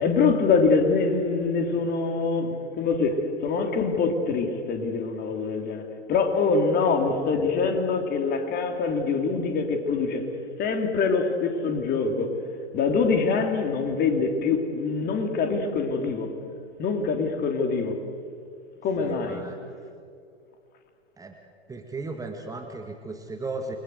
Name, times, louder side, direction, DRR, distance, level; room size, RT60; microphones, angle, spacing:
voice 1, 0.0-10.3 10.6-12.4 12.7-16.3 16.8-18.0 18.8-19.4, left 4 dB, 30° left, 4 dB, 3.4 m, -24 dB
voice 2, 19.0-19.6 21.2-21.3 21.7-23.8, right 3 dB, 10° right, 4 dB, 1.9 m, -36 dB
29.0 x 23.5 x 8.0 m, 2.4 s
figure-of-eight pair, 100°, 33 cm